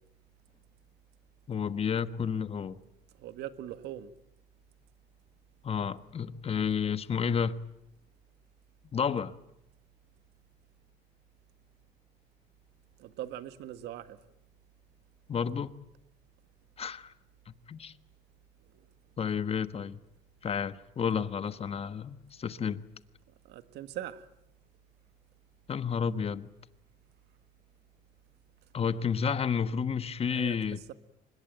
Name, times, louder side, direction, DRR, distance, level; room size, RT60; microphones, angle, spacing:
voice 1, 1.5-2.8 5.6-7.6 8.9-9.4 15.3-15.8 16.8-17.1 17.5-17.9 19.2-20.0 20.4-22.8 25.7-26.5 28.7-30.8, left 7 dB, 35° left, 1.3 m, -31 dB
voice 2, 3.2-4.1 13.0-14.2 18.7-18.9 23.4-24.3 30.3-30.6, right 12 dB, 80° right, 1.7 m, -41 dB
25.0 x 21.0 x 9.2 m
cardioid pair, 110°, 17 cm